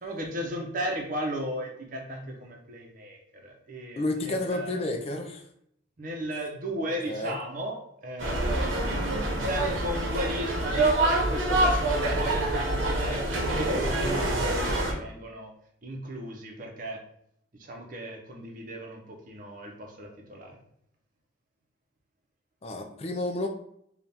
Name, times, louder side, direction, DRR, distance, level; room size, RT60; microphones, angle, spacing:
voice 1, 0.0-4.8 6.0-8.8 9.4-15.5 15.8-17.0 17.5-20.6, right 1 dB, 45° right, 1 dB, 0.7 m, -36 dB
voice 2, 4.0-5.5 7.1-7.4 22.6-23.5, left 2 dB, 30° left, 4 dB, 0.3 m, -31 dB
sound 1, 8.2-14.9, right 1 dB, 90° right, 0.9 m, -26 dB
3.4 x 2.4 x 4.1 m, 0.73 s
head